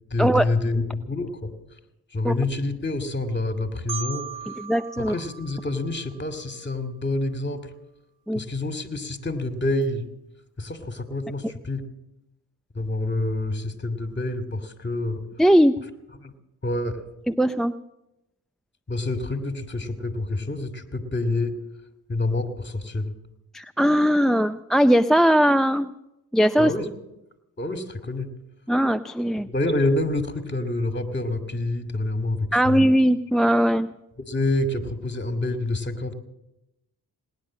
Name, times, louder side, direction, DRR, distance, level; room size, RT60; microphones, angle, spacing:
voice 1, 0.1-1.5 2.1-4.3 5.0-7.7 8.3-10.1 10.6-11.8 12.7-15.2 16.2-16.3 16.6-17.0 18.9-21.5 22.1-23.1 26.6-26.9 27.6-28.3 29.5-32.8 34.2-36.1, left 2 dB, 25° left, 8 dB, 2.4 m, -27 dB
Marimba xylophone, 3.9-6.7, right 7 dB, 85° right, 1.1 m, -38 dB
voice 2, 4.6-5.1 8.3-8.4 15.4-15.7 17.3-17.7 23.5-25.9 26.3-26.7 28.7-29.5 32.5-33.9, equal, ahead, 13 dB, 0.5 m, -19 dB
18.5 x 10.5 x 7.4 m, 0.90 s
supercardioid pair, 50°, 41 cm